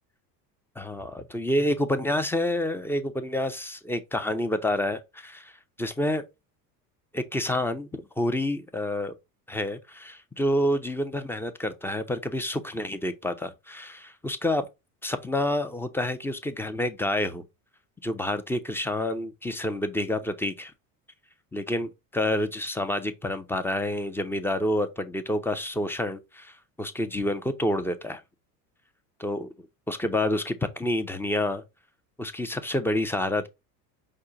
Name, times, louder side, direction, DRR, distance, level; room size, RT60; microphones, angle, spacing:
voice 1, 0.8-5.5 5.8-6.2 7.1-9.1 9.5-14.7 15.0-17.4 18.0-20.7 21.5-28.2 29.2-31.6 32.2-33.5, left 1 dB, 5° left, 0.4 m, -28 dB
5.4 x 2.2 x 3.7 m
hypercardioid pair, 80°, 49 cm